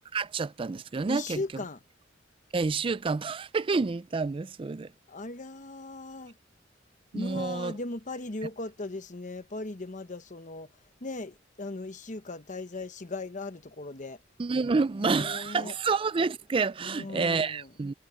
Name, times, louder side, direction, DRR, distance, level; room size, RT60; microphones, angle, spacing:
voice 1, 0.1-1.4 2.5-4.9 7.1-7.7 14.4-17.9, right 4 dB, 30° right, 0.4 m, -28 dB
voice 2, 1.1-1.8 5.1-6.4 7.1-10.7 11.0-14.2 15.0-15.8 16.8-17.7, left 2 dB, 40° left, 1.1 m, -38 dB
head